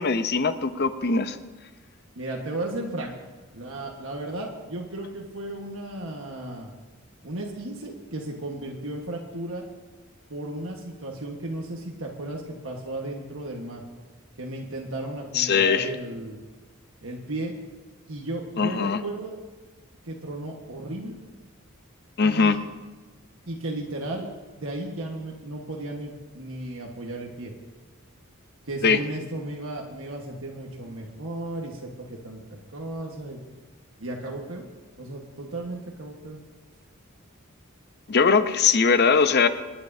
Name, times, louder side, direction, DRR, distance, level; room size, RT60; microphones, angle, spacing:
voice 1, 0.0-1.4 15.3-15.9 18.6-19.0 22.2-22.6 28.8-29.0 38.1-39.5, left 5 dB, 50° left, 10 dB, 0.7 m, -21 dB
voice 2, 2.1-3.1 3.5-6.7 7.2-9.6 10.3-13.8 14.4-16.4 17.0-17.6 18.1-19.4 20.0-21.1 22.2-22.6 23.5-24.3 24.6-27.5 28.6-33.4 34.0-34.7 35.0-36.4, right 2 dB, 70° right, 0 dB, 1.4 m, -34 dB
27.5 x 9.6 x 2.7 m, 1.3 s
head